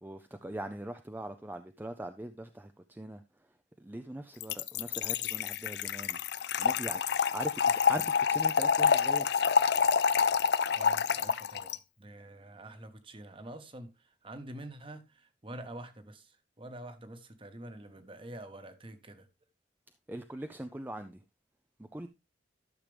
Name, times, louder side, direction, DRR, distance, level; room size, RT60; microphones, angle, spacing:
voice 1, 0.0-3.2 3.8-6.2 6.6-7.0 7.3-9.3 20.1-21.2 21.9-22.1, right 1 dB, 10° right, 0.5 m, -41 dB
Trickle dribble / Fill (with liquid), 4.4-11.8, left 6 dB, 65° left, 0.5 m, -27 dB
voice 2, 10.7-19.3, right 1 dB, 30° right, 1.2 m, -47 dB
12.0 x 6.6 x 3.3 m
head